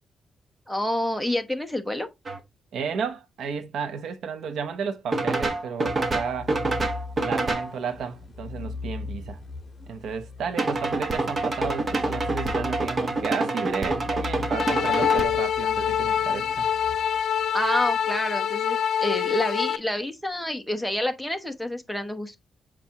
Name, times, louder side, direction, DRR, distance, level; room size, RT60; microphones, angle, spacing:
voice 1, 0.7-2.1 17.5-22.4, left 1 dB, ahead, 0.9 m, -28 dB
sound 1, 2.3-2.4 5.1-7.7 10.6-15.2, right 2 dB, 30° right, 1.0 m, -27 dB
voice 2, 2.7-6.5 7.2-9.4 9.9-16.7, right 6 dB, 75° right, 0.8 m, -32 dB
sound 2, 5.8-17.7, left 4 dB, 15° left, 2.9 m, -39 dB
sound 3, 14.5-19.8, left 9 dB, 65° left, 0.7 m, -25 dB
7.5 x 4.9 x 2.9 m
wide cardioid pair, 155°, 0 cm